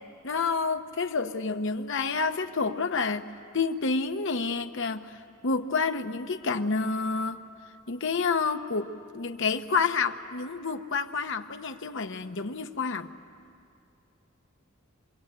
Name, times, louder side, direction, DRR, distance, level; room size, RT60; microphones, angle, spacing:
voice 1, 0.2-3.2 3.5-5.2 5.4-7.4 7.9-13.1, left 4 dB, 60° left, 7 dB, 0.9 m, -29 dB
25.0 x 21.5 x 8.8 m, 2.4 s
head